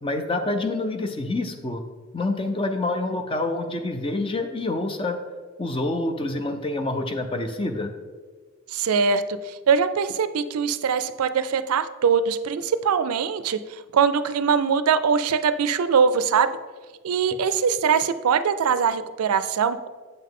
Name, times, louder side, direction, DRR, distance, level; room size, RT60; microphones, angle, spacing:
voice 1, 0.0-1.8 2.1-5.2 5.6-7.9, left 2 dB, 25° left, 6 dB, 0.5 m, -27 dB
voice 2, 8.7-16.5 17.0-19.9, right 6 dB, 90° right, 13 dB, 0.4 m, -22 dB
7.9 x 5.6 x 3.7 m, 1.5 s
head